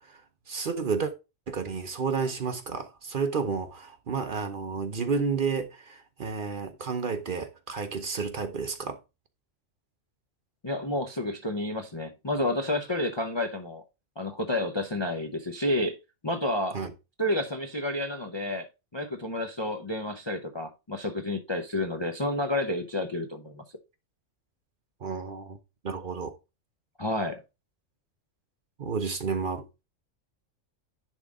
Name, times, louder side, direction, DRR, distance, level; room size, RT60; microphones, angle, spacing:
voice 1, 0.5-1.1 1.5-9.0 16.7-16.9 25.0-25.6 25.8-26.3 28.8-29.6, right 5 dB, 50° right, 0.8 m, -31 dB
voice 2, 10.6-13.8 14.2-16.0 16.2-16.8 17.2-18.7 18.9-23.6 27.0-27.4, left 1 dB, 30° left, 0.5 m, -30 dB
10.5 x 3.7 x 3.6 m
omnidirectional pair, 1.3 m